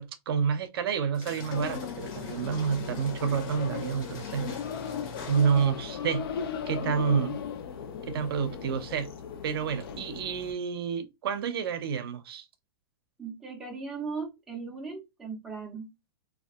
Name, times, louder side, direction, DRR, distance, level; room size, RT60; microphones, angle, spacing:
voice 1, 0.0-4.5 5.3-6.3 6.7-7.4 8.1-9.1 9.4-12.4, right 7 dB, 70° right, 0.5 m, -29 dB
sound 1, 1.1-5.9, left 4 dB, 50° left, 0.8 m, -43 dB
sound 2, 1.5-10.5, left 7 dB, 70° left, 0.5 m, -37 dB
voice 2, 13.2-15.9, right 4 dB, 5° right, 0.4 m, -38 dB
2.6 x 2.3 x 2.3 m
supercardioid pair, 165°, 13 cm